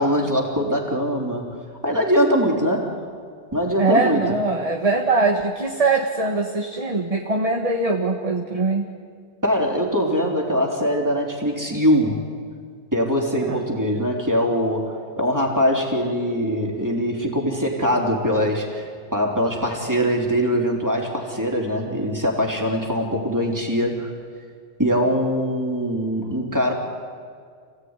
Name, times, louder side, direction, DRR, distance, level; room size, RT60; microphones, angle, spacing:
voice 1, 0.0-1.6 1.8-3.0 3.5-4.2 9.4-12.2 12.9-24.1 24.8-26.7, equal, 15° right, 0 dB, 3.5 m, -22 dB
voice 2, 3.8-8.8 13.5-13.6, right 3 dB, 30° right, 3 dB, 1.6 m, -22 dB
27.5 x 17.5 x 9.8 m, 2.1 s
omnidirectional pair, 1.2 m